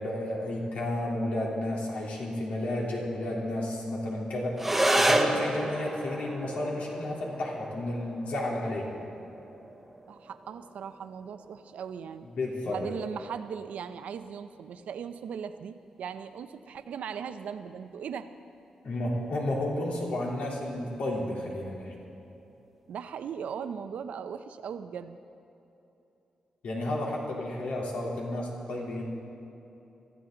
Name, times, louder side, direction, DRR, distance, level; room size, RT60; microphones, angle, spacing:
voice 1, 0.0-4.7 5.0-8.9 12.3-12.9 18.8-21.9 26.6-29.0, left 1 dB, 75° left, -3 dB, 3.5 m, -32 dB
sound 1, 4.6-13.6, right 1 dB, 5° right, 1.0 m, -31 dB
voice 2, 10.1-12.3 12.6-18.3 22.9-25.2, right 7 dB, 85° right, 10 dB, 0.7 m, -38 dB
23.5 x 14.5 x 3.9 m, 2.9 s
wide cardioid pair, 160°, 2 cm